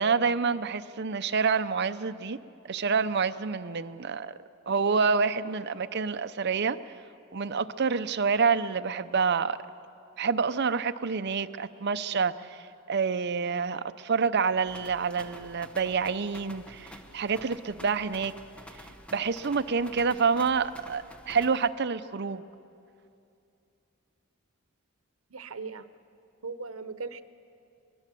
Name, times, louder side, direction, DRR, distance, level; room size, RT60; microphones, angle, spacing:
voice 1, 0.0-2.4 2.6-4.4 4.7-6.8 7.3-9.6 10.2-18.3 19.1-22.4, right 5 dB, 55° right, 11 dB, 0.7 m, -27 dB
sound 1, 14.7-21.7, equal, 5° left, 1.1 m, -49 dB
voice 2, 25.3-25.9 26.4-27.2, right 4 dB, 80° right, 12 dB, 0.9 m, -38 dB
22.5 x 21.5 x 7.6 m, 2.6 s
head